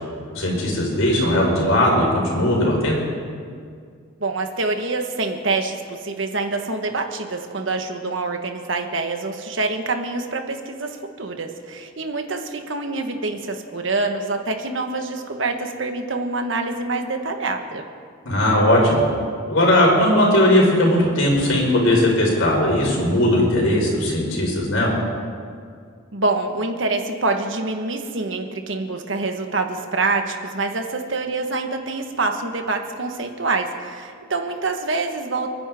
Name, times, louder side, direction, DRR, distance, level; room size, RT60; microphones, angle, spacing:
voice 1, 0.3-3.0 18.2-19.0 19.5-24.9, left 1 dB, 75° left, -2 dB, 4.6 m, -18 dB
voice 2, 4.2-17.8 26.1-35.5, right 3 dB, 65° right, 5 dB, 1.5 m, -26 dB
30.0 x 10.0 x 3.7 m, 2.2 s
head